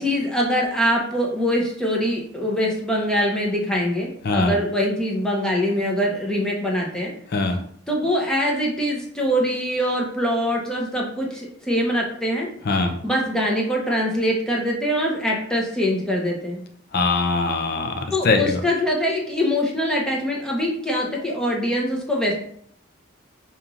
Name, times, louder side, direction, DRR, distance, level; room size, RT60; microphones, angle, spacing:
voice 1, 0.0-7.1 7.9-12.5 13.0-16.6 18.1-22.3, equal, 5° left, -2 dB, 0.6 m, -23 dB
voice 2, 16.9-18.6, left 3 dB, 55° left, 5 dB, 0.5 m, -22 dB
5.2 x 2.9 x 2.4 m, 0.64 s
head